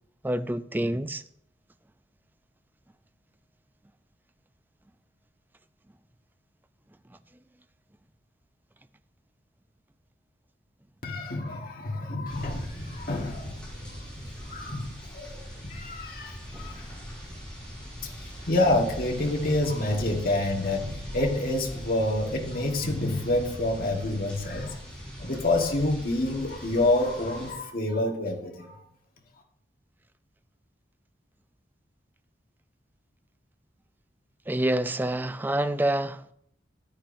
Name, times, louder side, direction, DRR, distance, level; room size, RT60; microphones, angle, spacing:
voice 1, 0.2-1.2 16.5-16.8 34.5-36.2, right 1 dB, 10° right, 0.4 m, -27 dB
voice 2, 11.0-13.6 13.8-13.9 14.4-16.9 18.0-24.8 25.2-28.8, left 2 dB, 55° left, 1.5 m, -28 dB
sound 1, 12.3-27.5, equal, 5° left, 4.6 m, -40 dB
14.5 x 10.5 x 2.6 m
head